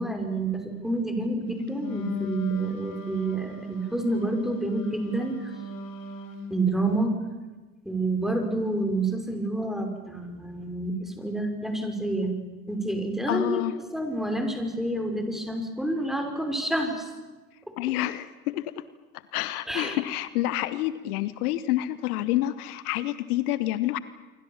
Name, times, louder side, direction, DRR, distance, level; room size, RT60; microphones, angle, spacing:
voice 1, 0.0-5.5 6.5-7.1 7.8-12.4 12.7-17.1 19.7-20.0, right 2 dB, ahead, 5 dB, 5.6 m, -28 dB
Wind instrument woodwind instrument, 1.7-6.5, left 2 dB, 45° left, 4.5 m, -37 dB
voice 2, 13.3-13.7 17.8-18.7 19.3-24.0, left 15 dB, 70° left, 16 dB, 1.1 m, -28 dB
27.0 x 24.0 x 7.3 m, 1.2 s
hypercardioid pair, 65°, 46 cm